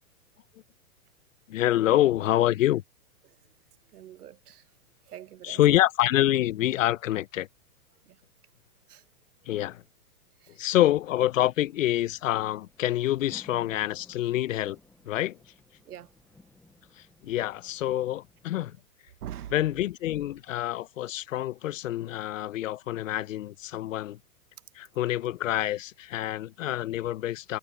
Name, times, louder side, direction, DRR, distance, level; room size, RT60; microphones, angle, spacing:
voice 1, 1.5-2.8 5.4-7.5 9.5-9.8 10.6-14.8 15.0-15.4 17.0-18.8 19.5-24.2 24.8-27.6, left 14 dB, 60° left, 1.0 m, -26 dB
voice 2, 3.8-4.7 5.0-5.6 8.0-8.2 8.9-9.1 10.4-10.7 15.8-16.1 17.9-18.1 19.2-19.6, right 11 dB, 80° right, 1.2 m, -44 dB
sound 1, 11.0-18.4, left 2 dB, 5° left, 1.0 m, -57 dB
hypercardioid pair, 145°, 45 cm